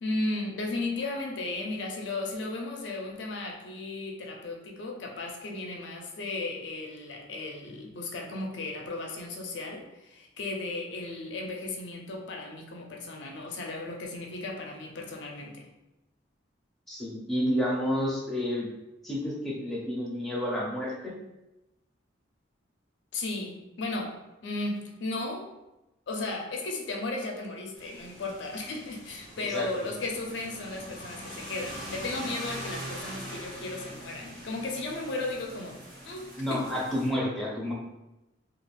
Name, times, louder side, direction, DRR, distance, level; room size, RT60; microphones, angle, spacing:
voice 1, 0.0-15.7 23.1-25.5 26.1-36.8, left 2 dB, 70° left, 1 dB, 0.5 m, -35 dB
voice 2, 16.9-18.7 19.0-21.1 29.4-29.7 36.4-37.7, equal, ahead, -6 dB, 0.6 m, -30 dB
sound 1, 27.8-37.1, equal, 55° right, 0.9 m, -42 dB
2.4 x 2.3 x 3.2 m, 0.96 s
head